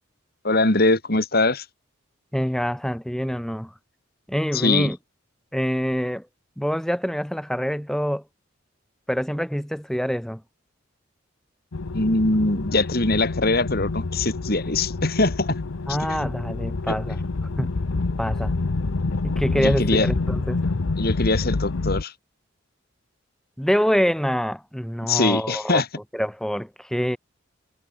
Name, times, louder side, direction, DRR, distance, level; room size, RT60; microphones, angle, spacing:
voice 1, 0.4-1.6 4.5-4.9 11.9-15.6 16.9-17.0 19.6-20.1 21.0-22.1 25.0-25.9, left 2 dB, 50° left, 3.0 m, -22 dB
voice 2, 2.3-3.7 4.3-5.0 5.5-6.3 6.6-8.2 9.1-10.4 15.9-17.2 17.6-17.7 18.2-18.5 19.2-20.6 23.6-25.8 26.1-27.2, equal, ahead, 1.5 m, -25 dB
sound 1, 11.7-22.0, left 3 dB, 85° left, 0.8 m, -27 dB
head